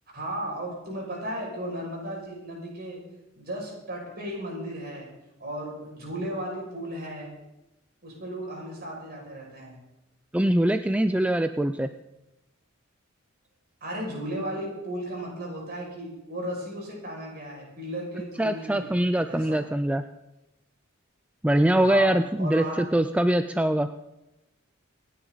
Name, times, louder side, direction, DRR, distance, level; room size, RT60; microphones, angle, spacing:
voice 1, 0.1-3.0 3.3-5.1 5.4-7.3 8.0-9.8 13.8-18.9 19.3-19.5 21.8-22.8, equal, 50° right, -2 dB, 6.1 m, -35 dB
voice 2, 10.3-11.9 18.4-20.0 21.4-23.9, right 1 dB, 5° right, 9 dB, 0.4 m, -23 dB
26.5 x 10.0 x 4.0 m, 0.93 s
head